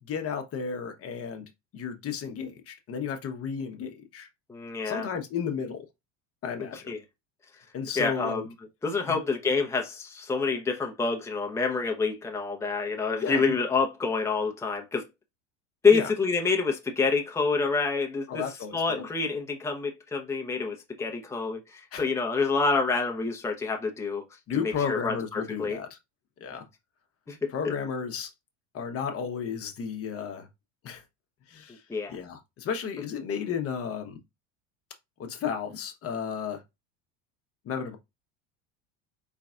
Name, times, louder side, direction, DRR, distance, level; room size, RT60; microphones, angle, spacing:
voice 1, 0.0-1.5 1.7-4.3 4.8-5.9 6.4-6.9 7.7-8.5 9.1-9.2 13.2-13.5 15.9-16.1 18.3-19.1 21.9-22.1 24.5-26.0 26.4-26.7 27.5-28.3 28.7-30.5 30.8-31.0 31.5-31.8 32.1-34.2 35.2-36.6 37.6-38.0, left 7 dB, 40° left, 0.9 m, -33 dB
voice 2, 4.5-5.1 6.9-7.0 8.0-8.4 8.8-15.0 15.8-18.4 18.7-24.2 24.5-25.8 27.3-27.4 31.9-32.2, left 4 dB, 10° left, 0.7 m, -27 dB
3.9 x 3.3 x 2.4 m
supercardioid pair, 100°, 36 cm